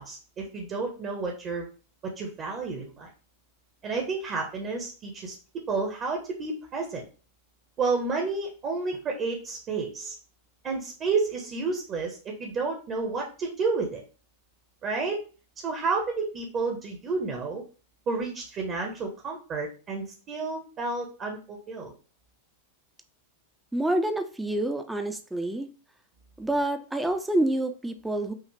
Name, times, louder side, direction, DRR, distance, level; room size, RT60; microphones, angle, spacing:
voice 1, 0.0-1.7 2.2-3.1 3.8-5.4 5.7-7.0 7.8-10.2 10.6-14.0 14.8-15.2 15.6-17.6 18.1-21.9, right 4 dB, 30° right, 2 dB, 0.9 m, -30 dB
voice 2, 23.7-25.7 26.4-28.3, right 1 dB, 5° right, 7 dB, 0.6 m, -27 dB
5.7 x 2.4 x 3.3 m, 0.37 s
figure-of-eight pair, 90°, 0 cm